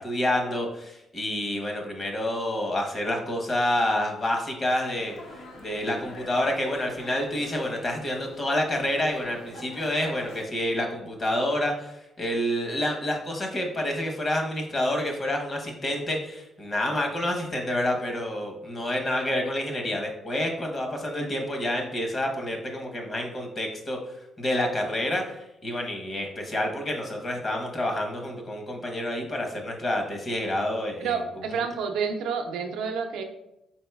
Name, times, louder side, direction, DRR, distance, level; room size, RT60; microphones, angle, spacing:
voice 1, 0.0-5.1 5.6-24.0 24.4-31.2, left 1 dB, 35° left, 2 dB, 0.9 m, -28 dB
Dog, 4.9-10.4, left 2 dB, 75° left, 0.9 m, -45 dB
voice 2, 31.0-33.2, right 6 dB, 90° right, 4 dB, 0.5 m, -29 dB
4.4 x 3.9 x 2.3 m, 0.86 s
cardioid pair, 90°, 0 cm